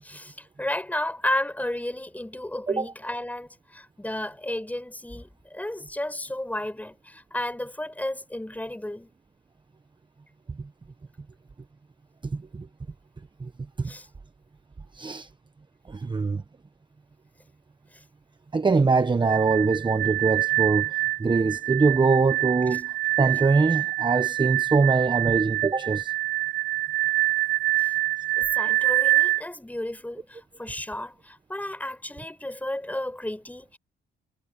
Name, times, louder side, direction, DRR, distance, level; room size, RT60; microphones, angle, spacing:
voice 1, 0.0-9.1 13.9-14.1 27.8-27.9 28.4-33.8, left 1 dB, 10° left, 7.9 m, -33 dB
voice 2, 12.3-12.7 13.4-13.5 13.8-13.9 14.9-15.3 15.9-16.4 18.5-22.9 23.2-26.1, right 4 dB, 25° right, 1.1 m, -23 dB
sound 1, 19.2-29.4, right 17 dB, 60° right, 4.8 m, -26 dB
cardioid pair, 90°, 20 cm